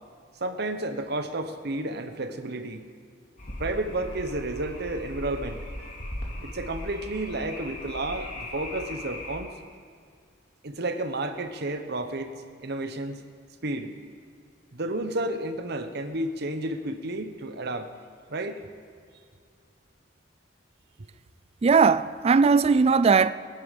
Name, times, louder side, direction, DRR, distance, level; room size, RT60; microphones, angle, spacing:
voice 1, 0.4-2.8 3.6-5.9 6.4-9.5 10.6-12.3 12.6-13.2 13.6-13.9 14.7-17.9 18.3-18.6, right 2 dB, 60° right, 1.0 m, -31 dB
sound 1, 3.4-9.4, left 1 dB, 45° left, 2.5 m, -38 dB
voice 2, 21.6-23.3, right 5 dB, 35° right, 0.3 m, -19 dB
20.0 x 10.5 x 5.2 m
head